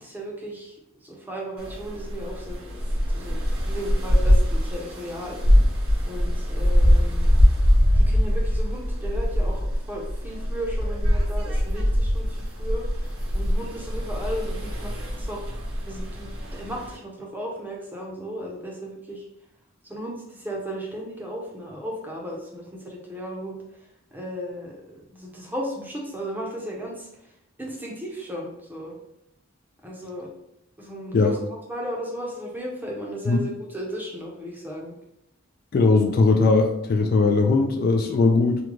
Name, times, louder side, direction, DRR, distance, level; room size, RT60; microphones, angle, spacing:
voice 1, 0.0-0.8 1.0-2.6 3.1-5.4 6.1-7.3 7.9-15.5 15.9-19.2 19.8-23.6 24.1-27.1 27.6-28.9 29.8-30.3 30.8-31.4 31.7-34.9, equal, 10° right, -2 dB, 0.6 m, -35 dB
sound 1, 1.6-17.0, equal, 75° right, 1.4 m, -22 dB
voice 2, 35.7-38.6, left 3 dB, 45° left, 4 dB, 0.3 m, -19 dB
3.6 x 2.2 x 3.0 m, 0.80 s
head